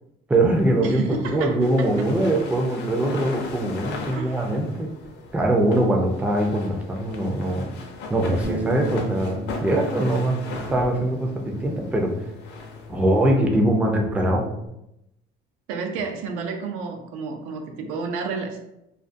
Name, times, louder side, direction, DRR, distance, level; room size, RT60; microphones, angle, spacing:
voice 1, 0.3-1.0 1.3-4.9 5.3-7.7 8.1-10.4 10.7-12.1 12.9-14.5, right 1 dB, 5° right, 1 dB, 0.3 m, -22 dB
sound 1, 0.5-13.3, left 3 dB, 55° left, 0.5 m, -39 dB
voice 2, 0.8-2.1 4.1-4.5 15.7-18.6, right 4 dB, 85° right, 4 dB, 0.5 m, -31 dB
Bass guitar, 8.4-14.7, equal, 45° right, 0.6 m, -37 dB
2.4 x 2.2 x 2.5 m, 0.85 s
cardioid pair, 115°, 21 cm